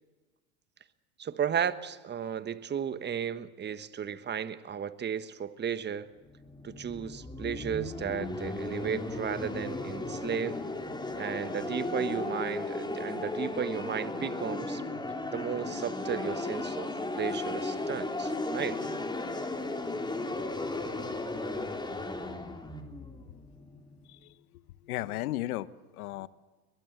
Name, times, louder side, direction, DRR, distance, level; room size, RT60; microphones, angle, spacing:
voice 1, 1.2-6.1 6.6-10.6 11.2-14.8 15.3-16.9 17.1-18.8, right 8 dB, 25° right, 13 dB, 1.3 m, -34 dB
sound 1, 6.2-24.1, left 2 dB, 10° left, 3.3 m, -35 dB
voice 2, 24.1-25.7 25.9-26.3, left 16 dB, 75° left, 17 dB, 1.1 m, -36 dB
22.0 x 21.5 x 8.0 m, 1.3 s
hypercardioid pair, 100°, 44 cm